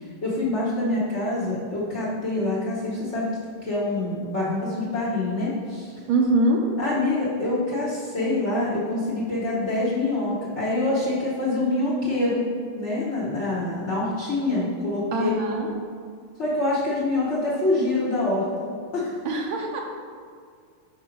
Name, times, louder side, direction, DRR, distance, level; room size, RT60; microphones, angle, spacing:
voice 1, 0.2-3.3 3.6-5.9 6.8-12.4 12.7-15.3 16.4-19.1, left 2 dB, 40° left, -7 dB, 1.2 m, -25 dB
voice 2, 6.1-6.6 15.1-15.7 19.2-19.8, right 2 dB, 80° right, 0 dB, 1.5 m, -23 dB
5.9 x 4.5 x 5.0 m, 2.1 s
omnidirectional pair, 2.3 m